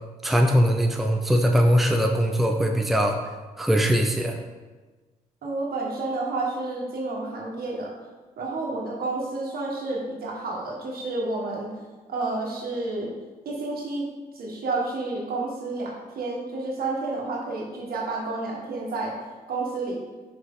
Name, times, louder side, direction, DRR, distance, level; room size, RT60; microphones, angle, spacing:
voice 1, 0.2-3.2 3.6-4.4, equal, ahead, 3 dB, 0.6 m, -21 dB
voice 2, 5.4-7.9 8.4-11.7 12.1-13.1 13.4-14.1 14.3-19.1 19.5-20.0, right 3 dB, 70° right, -2 dB, 1.6 m, -30 dB
6.3 x 4.7 x 3.8 m, 1.3 s
cardioid pair, 80°, 16 cm